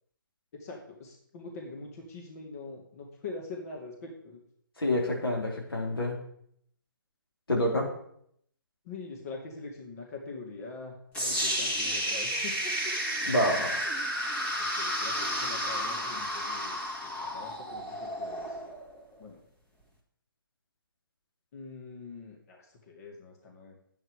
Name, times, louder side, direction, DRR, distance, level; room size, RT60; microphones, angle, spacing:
voice 1, 0.5-4.4 8.8-13.4 14.8-18.6 19.2-19.4 21.5-23.7, left 3 dB, 45° left, 0 dB, 2.4 m, -44 dB
voice 2, 4.8-6.2 7.5-7.9 13.2-13.8, left 1 dB, 85° left, -1 dB, 4.0 m, -27 dB
sound 1, 11.1-19.2, equal, 10° left, 1.8 m, -32 dB
11.0 x 8.9 x 4.8 m, 0.68 s
hypercardioid pair, 145°, 12 cm